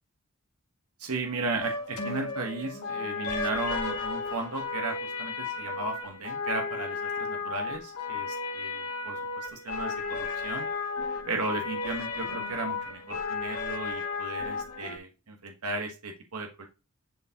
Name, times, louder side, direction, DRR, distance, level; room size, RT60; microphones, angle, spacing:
voice 1, 1.0-10.7 11.2-16.7, right 3 dB, 80° right, 2 dB, 1.2 m, -35 dB
sound 1, 1.6-15.0, left 4 dB, 85° left, 2.0 m, -34 dB
11.0 x 4.3 x 2.9 m, 0.30 s
head